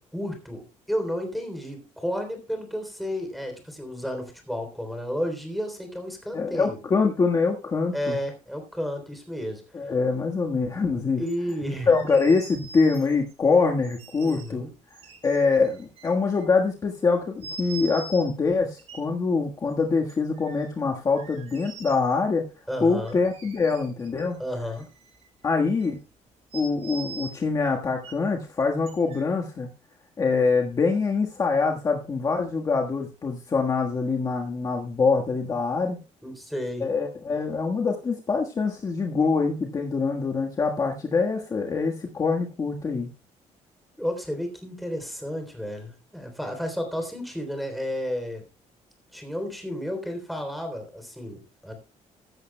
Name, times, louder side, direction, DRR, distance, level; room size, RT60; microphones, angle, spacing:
voice 1, 0.0-6.8 7.9-9.6 11.2-11.9 14.2-14.7 22.7-23.2 24.4-24.9 36.2-36.9 44.0-48.4 49.1-51.7, equal, ahead, 4 dB, 3.5 m, -32 dB
voice 2, 6.3-8.2 9.7-11.2 11.9-14.6 15.2-22.5 22.8-24.4 25.4-26.0 26.5-29.7 30.2-36.0 36.8-43.1, left 4 dB, 30° left, 1 dB, 1.5 m, -24 dB
sound 1, 11.3-11.5 11.9-13.3 13.8-14.5 14.9-16.5 17.4-18.3 18.8-19.0 20.1-20.7 21.1-22.2 23.0-24.2 24.5-25.4 25.8-25.9 26.5-27.3 28.0-28.1 28.9-29.2, right 4 dB, 55° right, 5.0 m, -42 dB
15.0 x 12.5 x 2.2 m, 0.32 s
cardioid pair, 160°, 12 cm